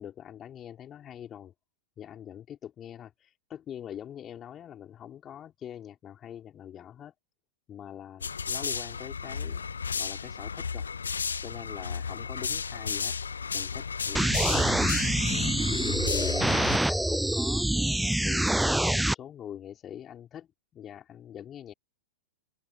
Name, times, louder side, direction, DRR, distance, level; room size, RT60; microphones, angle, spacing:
voice 1, 0.0-1.5 2.0-7.1 7.7-10.9 11.4-13.2 13.5-15.6 16.0-16.5 16.9-21.7, left 10 dB, 25° left, 4.4 m, -43 dB
sound 1, 8.2-16.8, left 6 dB, 75° left, 0.6 m, -33 dB
sound 2, 14.1-19.1, right 1 dB, 5° right, 0.6 m, -26 dB
figure-of-eight pair, 100°, 0 cm